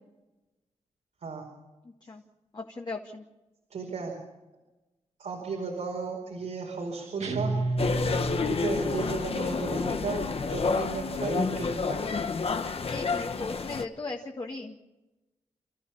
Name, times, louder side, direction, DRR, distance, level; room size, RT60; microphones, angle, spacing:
voice 1, 2.5-3.2 12.8-14.8, left 3 dB, 40° left, 0 dB, 2.0 m, -37 dB
voice 2, 3.7-4.1 5.2-7.6 8.4-12.0, right 4 dB, 85° right, 0 dB, 4.9 m, -34 dB
sound 1, 7.2-8.9, right 2 dB, 65° right, 2.0 m, -30 dB
sound 2, 7.8-13.8, left 4 dB, 55° left, 1.3 m, -29 dB
29.5 x 14.0 x 7.2 m, 1.1 s
wide cardioid pair, 110°, 12 cm